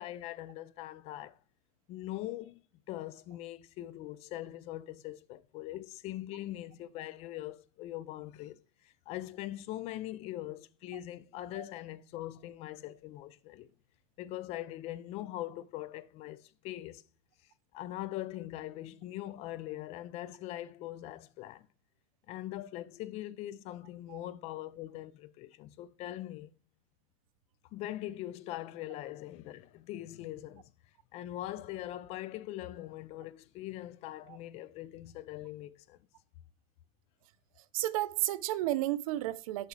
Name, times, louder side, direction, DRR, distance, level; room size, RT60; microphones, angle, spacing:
voice 1, 0.0-1.4 1.9-2.6 2.9-13.7 14.2-17.0 17.7-21.7 22.3-26.5 27.7-30.7 31.1-36.0, left 14 dB, 40° left, 0.4 m, -42 dB
voice 2, 37.7-39.7, right 15 dB, 90° right, 0.6 m, -32 dB
6.6 x 5.9 x 4.7 m
supercardioid pair, 165°, 17 cm